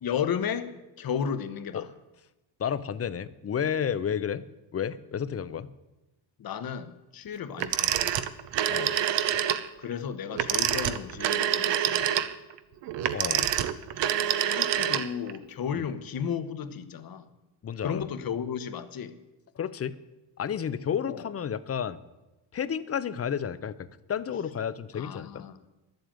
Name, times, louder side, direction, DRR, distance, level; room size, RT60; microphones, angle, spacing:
voice 1, 0.0-1.9 6.4-8.3 9.8-12.2 14.4-17.2 17.8-19.1 21.1-21.2 24.9-25.6, left 7 dB, 50° left, 1.1 m, -34 dB
voice 2, 2.6-4.4 4.7-5.7 8.7-8.9 13.1-13.5 15.7-15.9 17.6-18.1 19.6-20.0 20.4-22.0 22.5-25.5, left 8 dB, 30° left, 0.6 m, -31 dB
Telephone, 7.6-9.7 10.3-15.4, right 10 dB, 65° right, 0.9 m, -26 dB
12.0 x 7.8 x 8.8 m
cardioid pair, 120°, 47 cm